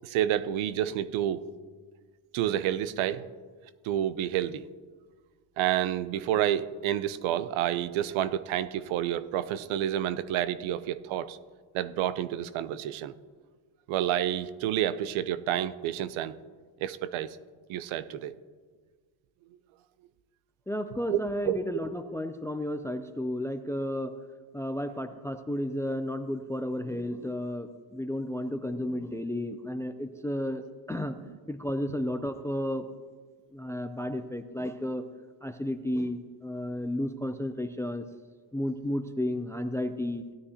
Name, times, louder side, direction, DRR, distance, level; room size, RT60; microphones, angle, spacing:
voice 1, 0.0-1.4 2.3-3.3 3.8-4.6 5.6-11.4 11.7-13.1 13.9-16.4 16.8-17.4 17.7-18.3 21.1-21.6 31.3-31.4, right 11 dB, 75° right, 14 dB, 0.7 m, -29 dB
voice 2, 20.7-24.1 24.5-31.2 31.5-32.9 33.5-35.0 35.4-38.0 38.5-40.2, left 1 dB, 5° left, 9 dB, 0.3 m, -32 dB
17.0 x 9.6 x 2.8 m, 1.5 s
cardioid pair, 105°, 48 cm